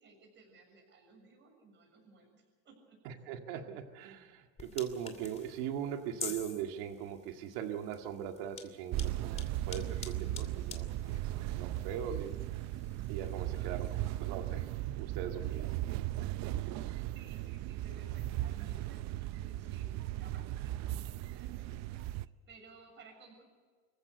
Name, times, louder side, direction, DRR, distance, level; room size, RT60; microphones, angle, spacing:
voice 1, 0.0-3.0 13.4-14.1 15.5-15.7 16.1-23.4, right 3 dB, 35° right, 2 dB, 7.0 m, -59 dB
voice 2, 3.1-11.2 11.6-12.4 13.1-13.9 14.2-14.6 14.9-15.7, right 9 dB, 75° right, 5 dB, 2.0 m, -40 dB
sound 1, 4.6-14.3, left 5 dB, 20° left, 2.5 m, -49 dB
sound 2, 8.9-22.3, right 14 dB, 50° right, 0.6 m, -37 dB
25.5 x 15.0 x 8.1 m, 1.5 s
cardioid pair, 135°, 34 cm